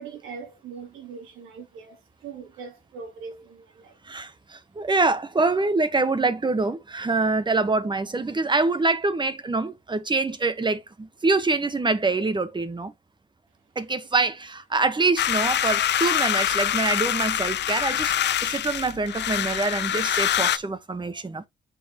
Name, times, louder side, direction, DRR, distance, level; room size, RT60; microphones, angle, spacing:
voice 1, 0.0-4.0 14.1-14.2, right 5 dB, 90° right, 3.3 m, -41 dB
voice 2, 4.0-12.9 13.7-18.1 18.4-21.5, right 3 dB, 25° right, 1.4 m, -25 dB
sound 1, 15.2-20.6, left 11 dB, 60° left, 0.8 m, -25 dB
8.0 x 6.8 x 3.1 m
cardioid pair, 90°, 20 cm